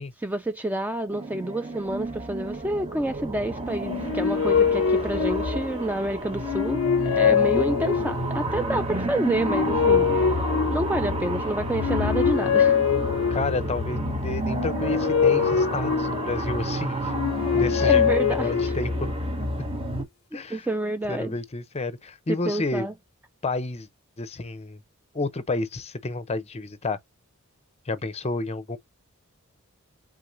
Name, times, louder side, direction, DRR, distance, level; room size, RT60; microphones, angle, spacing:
voice 1, 0.2-12.8 17.8-18.7 20.3-21.3 22.3-22.9, right 1 dB, 10° right, 0.3 m, -29 dB
sound 1, 1.1-20.0, equal, 25° right, 1.1 m, -30 dB
sound 2, 3.8-5.9 6.4-8.4 9.1-11.2 11.7-13.7 14.4-16.5 17.0-19.0, left 7 dB, 70° left, 0.4 m, -24 dB
voice 2, 13.3-17.1 17.5-18.0 18.3-19.2 20.3-20.7 21.1-22.9 23.4-23.9 24.2-24.8 25.1-27.0 27.9-28.8, left 3 dB, 30° left, 0.6 m, -30 dB
4.6 x 3.8 x 2.6 m
head